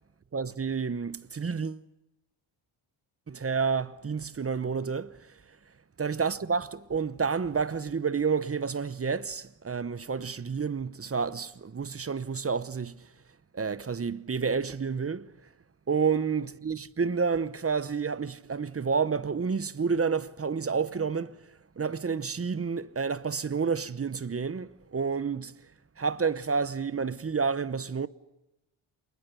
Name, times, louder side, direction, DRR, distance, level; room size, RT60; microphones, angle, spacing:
voice 1, 0.3-1.8 3.3-5.1 6.0-12.9 13.5-15.3 15.9-21.4 21.8-25.5 26.0-28.1, right 5 dB, 30° right, 0.9 m, -29 dB
28.0 x 20.5 x 8.2 m
wide cardioid pair, 155°, 49 cm